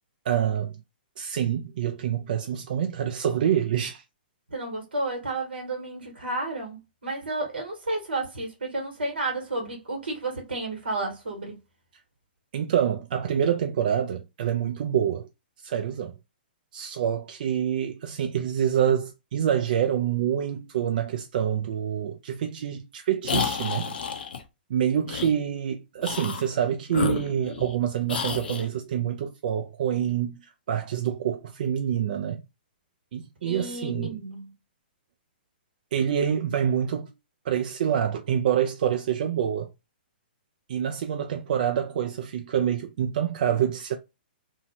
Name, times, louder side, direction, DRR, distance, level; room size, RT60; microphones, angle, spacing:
voice 1, 0.3-0.8 1.2-4.0 12.5-15.3 15.6-16.1 16.7-23.9 24.7-32.4 33.1-34.2 35.9-37.1 37.4-39.7 40.7-44.0, right 9 dB, 60° right, 0.4 m, -26 dB
voice 2, 4.5-11.6 33.4-34.5, right 2 dB, 85° right, 1.0 m, -32 dB
sound 1, 23.2-24.4 25.1-25.3 26.0-26.5 26.9-27.8 28.1-28.7, left 6 dB, 70° left, 0.5 m, -30 dB
2.7 x 2.0 x 2.8 m
hypercardioid pair, 130°, 5 cm